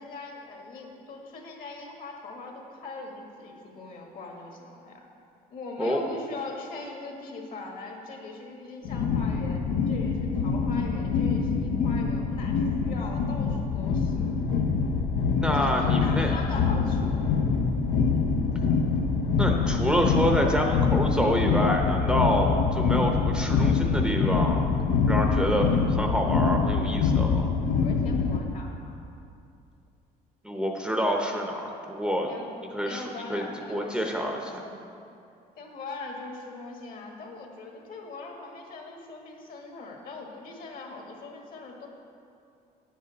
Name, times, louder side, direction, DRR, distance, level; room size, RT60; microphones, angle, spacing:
voice 1, 0.0-5.0 5.5-9.6 9.9-14.4 15.5-17.3 27.7-29.0 32.3-32.5 32.7-35.0 35.6-41.9, left 3 dB, 55° left, 0 dB, 1.6 m, -41 dB
sound 1, 8.8-28.4, left 5 dB, 80° left, 0.7 m, -25 dB
voice 2, 15.4-16.3 19.4-24.7 25.1-27.5 30.4-32.3 32.7-34.6, equal, 5° right, 1 dB, 0.7 m, -27 dB
9.8 x 7.7 x 4.1 m, 2.5 s
cardioid pair, 110°, 17 cm